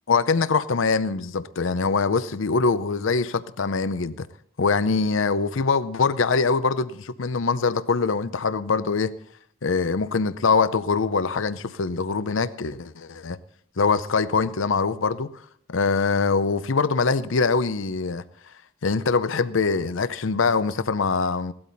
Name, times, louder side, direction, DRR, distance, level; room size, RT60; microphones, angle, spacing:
voice 1, 0.1-4.3 4.6-9.1 9.6-13.4 13.8-15.3 15.7-18.2 18.8-21.5, left 4 dB, 75° left, 0.6 m, -23 dB
17.0 x 12.5 x 4.0 m
head